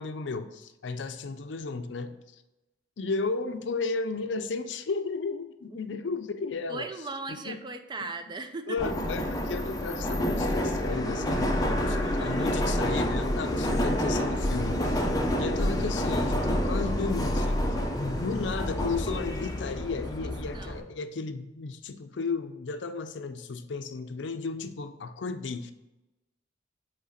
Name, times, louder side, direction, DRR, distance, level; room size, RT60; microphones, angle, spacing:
voice 1, 0.0-2.4 3.0-6.9 7.4-7.6 8.7-15.0 15.4-17.7 18.0-25.7, left 4 dB, 75° left, 10 dB, 0.5 m, -34 dB
voice 2, 6.7-8.8 11.6-11.8 12.0-12.5 19.9-20.9, right 3 dB, 25° right, 8 dB, 0.4 m, -39 dB
Subway metro underground, 8.8-20.8, left 1 dB, 20° left, 0.6 m, -28 dB
7.6 x 3.3 x 4.2 m, 1.0 s
head